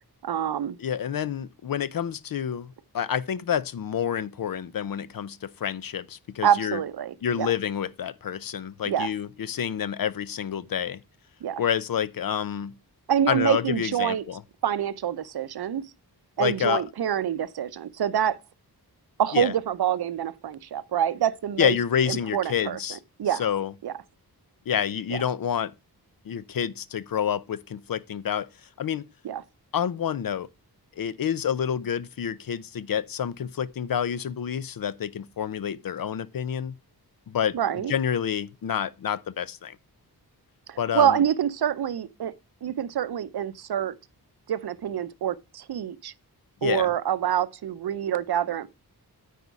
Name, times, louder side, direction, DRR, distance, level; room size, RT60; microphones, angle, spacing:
voice 1, 0.2-0.8 6.4-7.5 8.9-9.1 11.4-11.6 13.1-14.2 14.6-15.8 16.4-18.4 19.2-21.8 22.1-23.4 23.8-23.9 25.1-25.2 29.2-29.4 37.5-37.9 40.7-42.3 42.6-44.0 44.5-46.1 46.6-48.7, right 9 dB, 75° right, 0.6 m, -26 dB
voice 2, 0.8-6.8 7.2-11.0 11.6-12.7 13.3-14.4 16.4-16.8 19.3-19.5 21.6-23.0 23.4-23.7 24.7-25.7 26.2-28.5 28.8-29.0 29.7-30.5 31.0-36.8 37.3-39.8 40.8-41.2 46.6-46.9, left 8 dB, 60° left, 0.5 m, -28 dB
9.2 x 4.2 x 4.6 m
wide cardioid pair, 135°, 39 cm